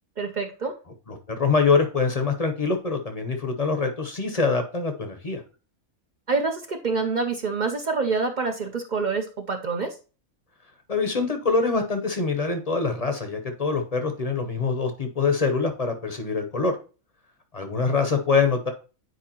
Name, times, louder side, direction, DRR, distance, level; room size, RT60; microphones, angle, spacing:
voice 1, 0.2-0.7 6.3-9.9, right 4 dB, 45° right, 5 dB, 0.6 m, -26 dB
voice 2, 1.1-5.4 10.9-16.8 17.5-18.7, left 4 dB, 35° left, 6 dB, 0.8 m, -24 dB
9.2 x 4.7 x 2.9 m, 0.34 s
omnidirectional pair, 1.4 m